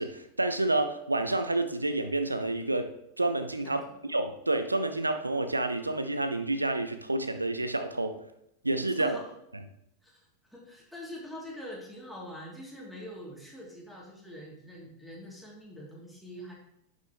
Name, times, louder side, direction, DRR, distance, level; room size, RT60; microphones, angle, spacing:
voice 1, 0.0-3.8 4.1-8.2 8.6-9.2, right 2 dB, 85° right, 9 dB, 0.6 m, -29 dB
voice 2, 3.6-4.0 9.0-9.2 10.0-10.2 10.5-16.5, equal, ahead, -4 dB, 2.8 m, -44 dB
11.0 x 6.3 x 3.0 m, 0.80 s
figure-of-eight pair, 90°, 0 cm